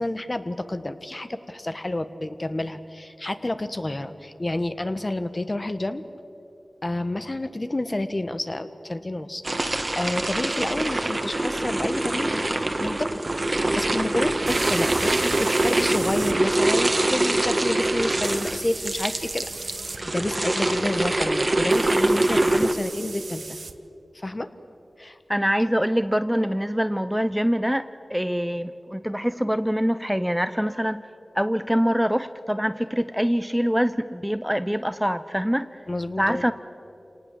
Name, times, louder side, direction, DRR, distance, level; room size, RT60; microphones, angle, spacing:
voice 1, 0.0-6.0 6.8-13.2 13.5-19.8 20.0-23.4 24.1-24.5 25.0-25.2 35.9-36.5, left 1 dB, 40° left, 10 dB, 1.3 m, -29 dB
sound 1, 9.4-22.7, right 2 dB, 45° right, 1.5 m, -24 dB
sound 2, 11.0-11.1 14.4-16.3 18.2-20.0 21.7-23.7, right 4 dB, 85° right, 0.9 m, -36 dB
voice 2, 25.3-31.0 31.3-35.8 36.2-36.5, equal, 5° right, 13 dB, 0.6 m, -24 dB
27.0 x 18.5 x 7.6 m, 2.8 s
cardioid pair, 40°, 0 cm